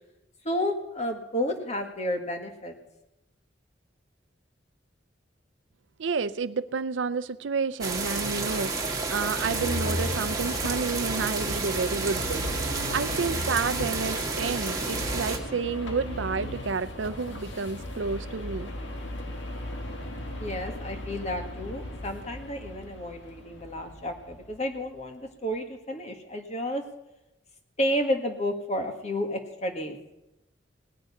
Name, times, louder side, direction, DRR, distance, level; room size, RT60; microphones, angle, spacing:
voice 1, 0.4-2.8 20.4-26.8 27.8-30.0, equal, 40° left, 1.8 m, -31 dB
voice 2, 6.0-8.8 9.1-18.7, right 5 dB, 80° right, 0.6 m, -30 dB
sound 1, 7.8-15.4, right 3 dB, 20° right, 1.8 m, -31 dB
sound 2, 9.4-24.6, left 1 dB, 80° left, 2.0 m, -37 dB
18.5 x 6.5 x 9.6 m
head